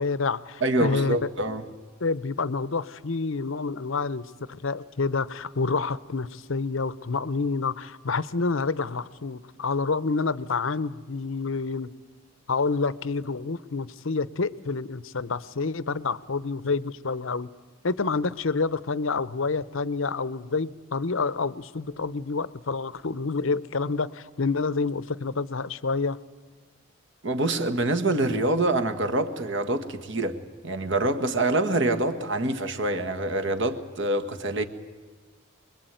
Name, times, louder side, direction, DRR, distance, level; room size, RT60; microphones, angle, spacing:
voice 1, 0.0-1.2 2.0-11.9 12.5-17.5 17.8-26.2, left 4 dB, 65° left, 18 dB, 0.8 m, -28 dB
voice 2, 0.6-1.6 27.2-30.4 30.6-34.6, right 2 dB, 55° right, 7 dB, 1.8 m, -25 dB
25.0 x 22.0 x 9.2 m, 1.4 s
head